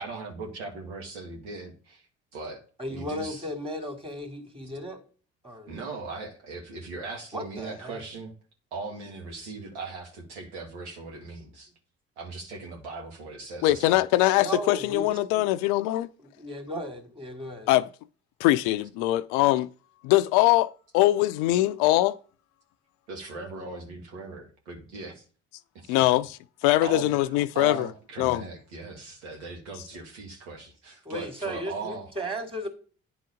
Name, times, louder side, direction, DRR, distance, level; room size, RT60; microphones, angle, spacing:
voice 1, 0.0-2.1 2.3-2.6 2.9-3.5 5.7-8.3 8.7-11.7 12.2-14.0 23.1-25.2 25.7-26.0 26.8-27.1 27.5-32.1, right 3 dB, 85° right, 1.9 m, -39 dB
voice 2, 2.8-5.0 5.4-5.7 7.3-8.0 14.4-15.4 16.4-17.7 31.0-32.7, equal, 15° right, 2.5 m, -35 dB
voice 3, 13.6-16.1 17.7-17.9 18.4-19.7 20.0-22.2 25.9-26.4 26.6-27.9 28.2-28.4, left 16 dB, 70° left, 0.5 m, -22 dB
9.6 x 3.9 x 5.0 m
hypercardioid pair, 55°, 34 cm